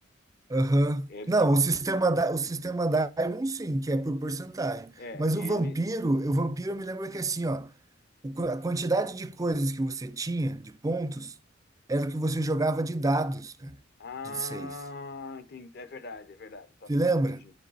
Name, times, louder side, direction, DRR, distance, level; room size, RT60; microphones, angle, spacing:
voice 1, 0.5-7.7 8.2-11.3 11.9-13.8 14.4-14.7 16.9-17.4, right 2 dB, 15° right, 0.4 m, -27 dB
voice 2, 1.1-1.6 5.0-5.8 14.0-17.5, left 3 dB, 50° left, 0.8 m, -41 dB
9.7 x 5.1 x 4.1 m
head